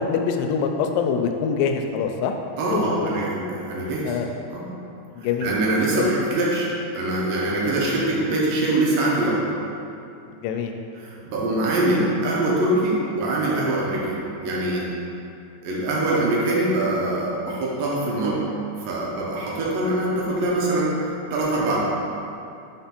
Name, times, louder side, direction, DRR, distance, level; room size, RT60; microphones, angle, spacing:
voice 1, 0.0-2.3 2.7-3.2 4.1-4.3 5.2-5.5 6.0-6.1 7.7-7.8 10.3-10.7, left 6 dB, 90° left, 5 dB, 2.3 m, -25 dB
voice 2, 2.6-4.2 4.5-4.7 5.2-9.4 11.0-14.9 15.6-18.4 18.9-21.8, right 2 dB, 90° right, -5 dB, 2.7 m, -23 dB
6.1 x 3.4 x 5.8 m, 2.7 s
omnidirectional pair, 3.9 m